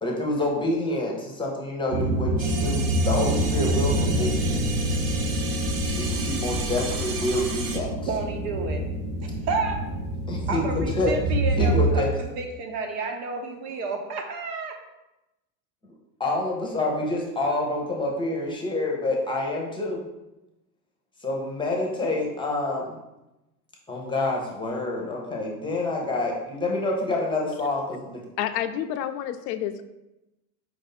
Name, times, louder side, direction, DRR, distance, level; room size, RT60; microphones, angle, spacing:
voice 1, 0.0-4.6 6.0-7.9 10.3-11.1 11.6-12.1 16.2-20.1 21.2-23.0 23.9-28.2, left 2 dB, 10° left, -2 dB, 0.8 m, -27 dB
sound 1, 1.9-12.0, right 1 dB, 25° right, 0.4 m, -26 dB
sound 2, 2.4-7.8, right 4 dB, 45° right, 0.8 m, -34 dB
voice 2, 8.0-8.9 9.2-9.9 10.5-14.8, right 4 dB, 65° right, 3 dB, 1.0 m, -31 dB
voice 3, 28.4-29.8, left 10 dB, 75° left, 10 dB, 0.6 m, -29 dB
4.8 x 2.6 x 4.0 m, 0.97 s
supercardioid pair, 125°, 50 cm